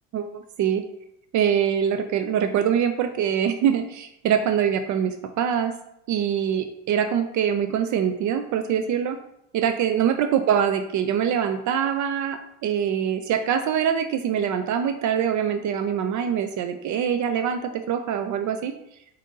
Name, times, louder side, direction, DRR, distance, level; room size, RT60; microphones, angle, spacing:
voice 1, 0.1-0.8 1.3-5.7 6.1-9.2 9.5-18.7, right 8 dB, 50° right, 8 dB, 0.4 m, -24 dB
5.1 x 2.7 x 3.9 m, 0.79 s
supercardioid pair, 95°, 37 cm